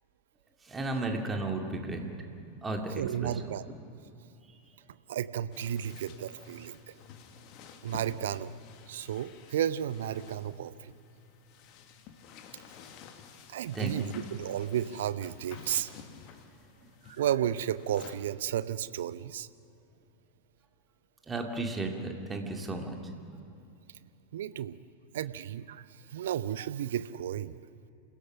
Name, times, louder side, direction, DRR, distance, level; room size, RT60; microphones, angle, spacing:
voice 1, 0.6-2.1 2.6-3.4 4.5-4.6 13.7-13.9 21.3-23.0, right 2 dB, 15° right, 2 dB, 2.4 m, -34 dB
voice 2, 2.9-3.6 5.1-6.9 7.8-8.5 8.9-10.9 13.5-15.9 17.1-19.5 24.3-24.8 25.1-27.6, right 10 dB, 60° right, 15 dB, 0.6 m, -33 dB
sound 1, 5.5-18.2, left 7 dB, 40° left, 1.7 m, -51 dB
27.5 x 16.5 x 6.1 m, 2.7 s
figure-of-eight pair, 90°, 0 cm